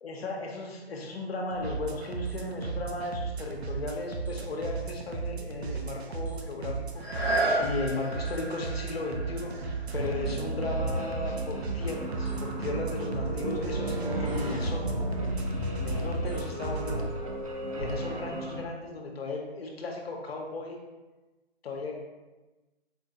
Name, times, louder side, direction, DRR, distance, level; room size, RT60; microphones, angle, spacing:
voice 1, 0.0-7.0 7.3-15.0 15.8-17.1 17.8-20.8 21.6-21.9, left 2 dB, 70° left, 0 dB, 0.7 m, -36 dB
sound 1, 1.5-17.0, right 5 dB, 90° right, 0.5 m, -36 dB
sound 2, 6.9-12.6 13.1-13.2, right 1 dB, 65° right, 1.4 m, -34 dB
sound 3, 9.9-18.6, equal, 35° right, 0.4 m, -33 dB
4.3 x 2.2 x 2.7 m, 1.2 s
figure-of-eight pair, 145°, 31 cm